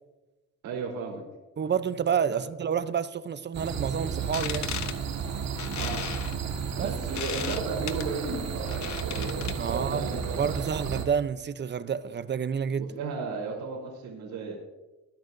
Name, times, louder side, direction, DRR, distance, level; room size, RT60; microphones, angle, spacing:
voice 1, 0.6-1.2 2.3-2.4 5.7-6.0 6.8-10.6 12.8-14.6, right 4 dB, 85° right, 3.5 m, -34 dB
voice 2, 1.6-4.7 6.7-6.9 9.6-10.1 10.4-12.9, right 7 dB, 35° right, 0.6 m, -29 dB
sound 1, 3.5-11.1, right 6 dB, 65° right, 1.7 m, -33 dB
sound 2, 4.2-9.8, left 9 dB, 70° left, 1.0 m, -37 dB
21.0 x 10.5 x 2.6 m
cardioid pair, 90°, 30 cm